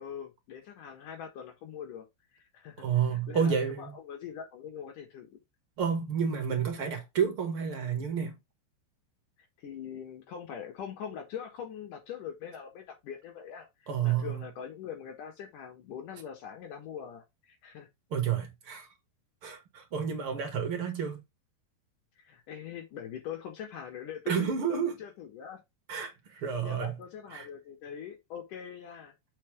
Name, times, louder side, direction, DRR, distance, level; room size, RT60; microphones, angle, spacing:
voice 1, 0.0-2.1 2.3-2.9 3.1-5.4 9.6-17.9 22.2-25.6 26.6-29.1, left 8 dB, 65° left, 2.5 m, -43 dB
voice 2, 2.8-4.0 5.8-8.3 13.9-14.4 18.1-18.9 19.4-21.2 24.3-25.0 25.9-27.0 27.3-27.5, right 7 dB, 50° right, 1.8 m, -30 dB
7.5 x 5.4 x 3.4 m
omnidirectional pair, 4.8 m